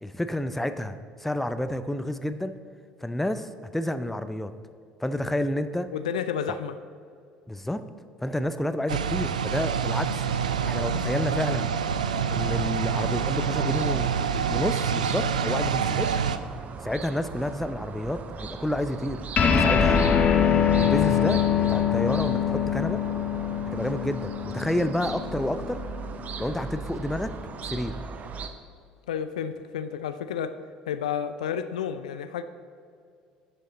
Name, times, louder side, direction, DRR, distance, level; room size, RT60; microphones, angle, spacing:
voice 1, 0.0-2.5 3.0-4.5 5.0-5.9 6.5-6.6 7.5-7.8 8.2-10.2 10.6-11.7 12.3-16.2 16.8-20.1 20.8-23.0 23.7-25.8 26.4-27.3 27.6-28.0, left 1 dB, 5° left, 11 dB, 0.5 m, -30 dB
voice 2, 5.9-6.8 29.1-30.5 30.9-32.4, left 8 dB, 75° left, 12 dB, 0.4 m, -31 dB
sound 1, 8.9-16.4, right 7 dB, 80° right, 0.3 m, -27 dB
sound 2, 10.2-28.5, right 5 dB, 40° right, 0.7 m, -39 dB
sound 3, 19.4-26.1, left 7 dB, 35° left, 0.9 m, -23 dB
11.0 x 6.5 x 4.0 m, 2.3 s
figure-of-eight pair, 60°, 4 cm